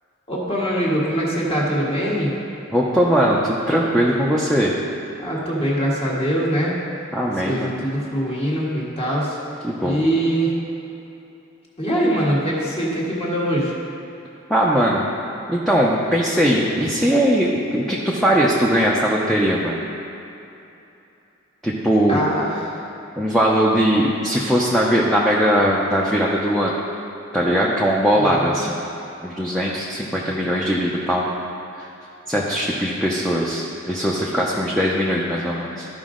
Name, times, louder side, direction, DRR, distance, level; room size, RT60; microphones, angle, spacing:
voice 1, 0.3-2.3 5.2-6.8 7.5-9.4 9.8-10.5 11.8-13.7 22.1-22.8 28.3-28.4, equal, 30° left, -5 dB, 1.6 m, -22 dB
voice 2, 2.7-4.7 7.1-7.7 9.6-10.0 14.5-15.1 15.5-19.8 21.6-22.2 23.2-26.7 27.3-28.8 29.2-31.4 31.7-31.9 32.3-35.9, equal, ahead, -5 dB, 0.6 m, -20 dB
13.0 x 5.2 x 3.8 m, 2.9 s
head